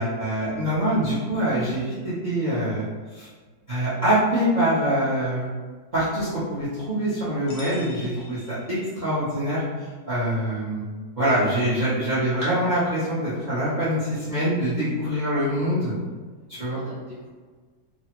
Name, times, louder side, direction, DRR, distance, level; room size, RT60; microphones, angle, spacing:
voice 1, 0.0-2.8 3.1-3.3 3.7-5.5 5.9-10.8 11.2-15.9 16.5-16.8, right 1 dB, 60° right, -11 dB, 0.4 m, -24 dB
sound 1, 7.5-9.3, left 1 dB, 70° left, 0.9 m, -45 dB
voice 2, 15.5-16.2 16.6-17.3, left 1 dB, 85° left, -9 dB, 0.4 m, -44 dB
3.1 x 2.0 x 2.9 m, 1.5 s
omnidirectional pair, 1.9 m